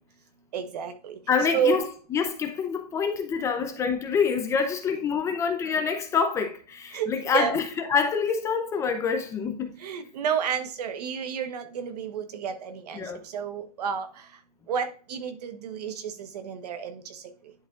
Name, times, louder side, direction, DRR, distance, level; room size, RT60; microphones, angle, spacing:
voice 1, 0.5-1.2 1.5-1.9 6.9-7.6 9.8-14.1 14.7-17.2, right 8 dB, 70° right, 1.1 m, -30 dB
voice 2, 1.3-1.8 2.1-9.7 12.9-13.2, left 6 dB, 15° left, 0.5 m, -26 dB
10.5 x 4.7 x 2.4 m
supercardioid pair, 155°, 21 cm